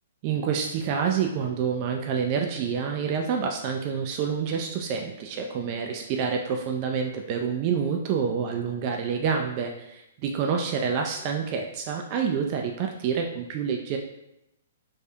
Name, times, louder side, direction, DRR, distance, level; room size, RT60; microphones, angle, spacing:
voice 1, 0.2-14.0, right 6 dB, 40° right, 2 dB, 0.4 m, -28 dB
3.4 x 3.2 x 2.7 m, 0.87 s
hypercardioid pair, 125°, 0 cm